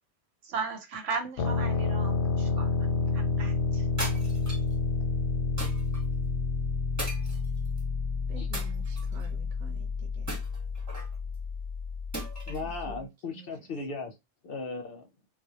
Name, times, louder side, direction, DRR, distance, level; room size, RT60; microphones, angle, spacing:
voice 1, 0.4-2.9 3.1-3.8, right 4 dB, 90° right, 1.0 m, -36 dB
sound 1, 1.4-13.0, left 4 dB, 85° left, 0.9 m, -30 dB
sound 2, 4.0-4.7 5.6-6.0 7.0-7.8 8.5-9.3 10.3-11.1 12.1-12.7, right 1 dB, 15° right, 1.0 m, -38 dB
voice 2, 8.3-10.4 12.6-13.5, right 5 dB, 45° right, 0.8 m, -49 dB
voice 3, 12.5-14.1 14.4-15.1, left 3 dB, 60° left, 0.7 m, -37 dB
2.2 x 2.1 x 2.8 m
omnidirectional pair, 1.2 m